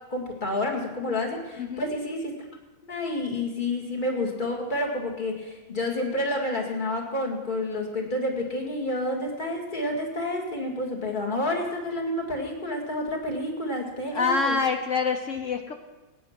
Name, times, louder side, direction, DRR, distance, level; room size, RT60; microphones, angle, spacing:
voice 1, 0.1-2.4 2.8-14.6, left 1 dB, 25° left, 1 dB, 2.1 m, -29 dB
voice 2, 1.6-1.9 14.1-15.7, left 4 dB, 55° left, 6 dB, 0.9 m, -26 dB
16.5 x 9.6 x 5.9 m, 1.1 s
omnidirectional pair, 2.2 m